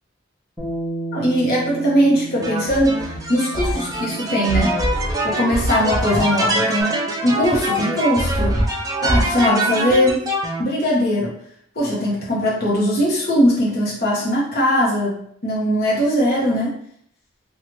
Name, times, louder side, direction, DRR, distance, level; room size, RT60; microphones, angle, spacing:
Bass guitar, 0.6-6.8, right 2 dB, ahead, 0.9 m, -35 dB
voice 1, 1.1-4.8 5.2-7.0 7.2-8.6 9.0-10.2 10.6-11.3 11.8-16.7, equal, 50° left, -6 dB, 0.9 m, -20 dB
sound 1, 2.4-10.6, right 1 dB, 20° right, 0.4 m, -23 dB
2.9 x 2.3 x 3.0 m, 0.66 s
head